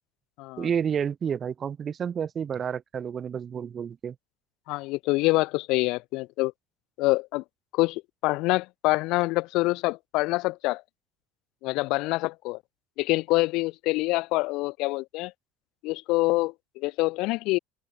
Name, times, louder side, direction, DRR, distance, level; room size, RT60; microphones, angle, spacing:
voice 1, 0.6-4.2, right 7 dB, 35° right, 5.7 m, -30 dB
voice 2, 4.7-6.5 7.0-7.4 7.7-10.8 11.6-12.6 13.0-15.3 15.8-17.6, left 22 dB, 70° left, 1.8 m, -26 dB
supercardioid pair, 120°, 0 cm